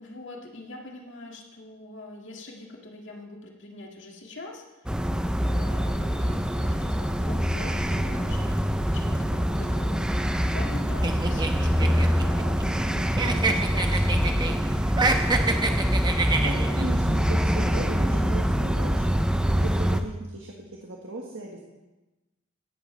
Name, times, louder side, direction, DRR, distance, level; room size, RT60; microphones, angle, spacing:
voice 1, 0.0-5.0 5.5-14.5, left 2 dB, 60° left, 0 dB, 2.0 m, -43 dB
sound 1, 4.9-20.0, equal, 5° right, 0.5 m, -25 dB
sound 2, 7.7-14.4, right 1 dB, 35° right, 1.3 m, -45 dB
sound 3, 11.0-12.9 13.2-14.6 14.9-16.8, right 3 dB, 20° right, 0.9 m, -26 dB
voice 2, 16.4-19.1 19.4-20.5 20.8-21.6, right 2 dB, 65° right, -1 dB, 1.4 m, -36 dB
17.0 x 12.0 x 3.3 m, 1.1 s
head